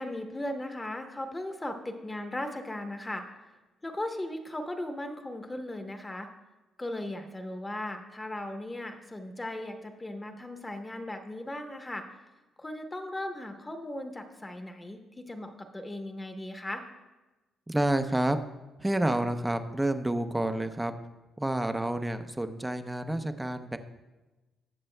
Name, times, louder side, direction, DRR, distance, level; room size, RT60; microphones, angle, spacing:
voice 1, 0.0-3.2 3.8-6.3 6.8-12.1 12.6-16.8, left 1 dB, 15° left, 5 dB, 1.0 m, -37 dB
voice 2, 17.7-18.4 18.8-20.9 21.4-23.8, right 1 dB, 10° right, 8 dB, 0.6 m, -29 dB
19.5 x 6.7 x 2.2 m, 1.1 s
cardioid pair, 90°, 0 cm